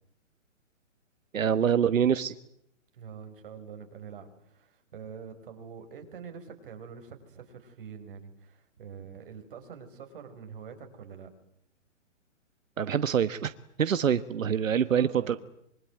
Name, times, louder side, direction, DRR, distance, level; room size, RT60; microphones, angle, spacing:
voice 1, 1.3-2.3 12.8-13.5 13.8-15.4, right 8 dB, 90° right, 13 dB, 1.4 m, -25 dB
voice 2, 2.9-11.3 14.9-15.4, right 6 dB, 45° right, 6 dB, 5.3 m, -45 dB
25.5 x 24.0 x 9.3 m, 0.74 s
hypercardioid pair, 170°, 38 cm